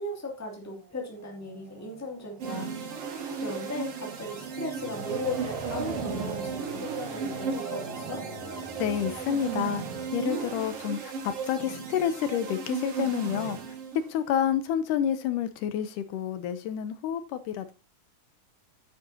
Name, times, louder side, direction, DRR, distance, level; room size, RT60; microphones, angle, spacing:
voice 1, 0.0-2.8 3.4-8.3, left 1 dB, 5° left, 1.8 m, -37 dB
sound 1, 0.7-11.5, right 4 dB, 80° right, 3.2 m, -42 dB
sound 2, 2.4-14.2, right 5 dB, 55° right, 2.3 m, -35 dB
voice 2, 8.8-9.8 10.1-13.6 14.1-17.7, left 9 dB, 80° left, 2.2 m, -29 dB
9.7 x 9.0 x 2.7 m
omnidirectional pair, 3.8 m